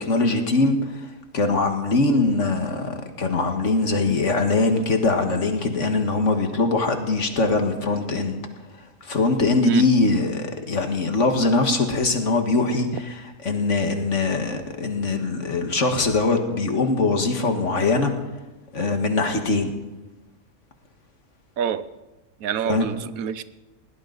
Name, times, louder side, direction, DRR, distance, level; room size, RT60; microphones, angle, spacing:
voice 1, 0.0-8.4 9.0-18.1 18.7-19.7 22.7-22.9, left 3 dB, 60° left, 2.0 m, -22 dB
voice 2, 22.4-23.4, right 9 dB, 90° right, 1.2 m, -26 dB
21.0 x 17.0 x 4.0 m
omnidirectional pair, 1.4 m